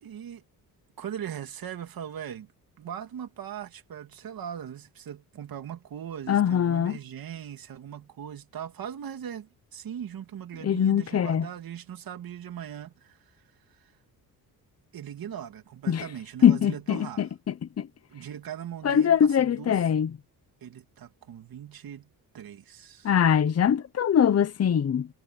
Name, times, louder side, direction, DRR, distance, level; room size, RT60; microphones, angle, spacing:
voice 1, 0.0-0.4 1.0-2.5 2.8-14.0 14.9-17.3 18.1-19.9 20.6-23.1, right 9 dB, 65° right, 2.7 m, -40 dB
voice 2, 6.3-7.0 10.6-11.5 15.9-16.0 16.4-17.9 18.8-20.1 23.0-25.1, left 8 dB, 40° left, 0.9 m, -22 dB
cardioid pair, 115°, 38 cm